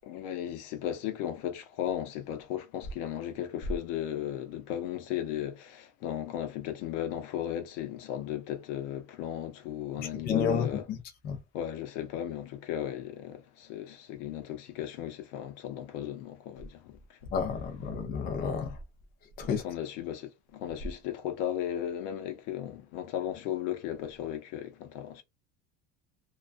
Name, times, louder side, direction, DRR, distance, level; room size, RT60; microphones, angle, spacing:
voice 1, 0.0-10.9 11.5-17.2 19.4-25.2, left 11 dB, 90° left, 0.7 m, -36 dB
voice 2, 10.0-11.0 11.2-11.4 17.3-18.8 19.4-19.6, left 6 dB, 30° left, 0.4 m, -30 dB
2.3 x 2.2 x 2.4 m
cardioid pair, 170°, 34 cm